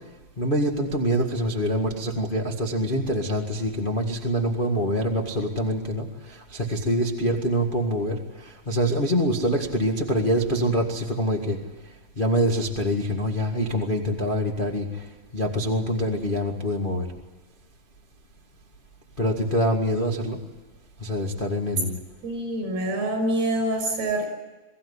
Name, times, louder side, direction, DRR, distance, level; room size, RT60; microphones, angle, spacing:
voice 1, 0.4-8.2 8.4-11.6 12.2-14.9 15.3-17.1 19.2-20.4 21.0-22.0, equal, 40° left, 1 dB, 0.7 m, -25 dB
voice 2, 22.2-24.3, right 1 dB, 80° right, 5 dB, 8.0 m, -26 dB
22.5 x 16.0 x 9.8 m, 1.2 s
omnidirectional pair, 4.4 m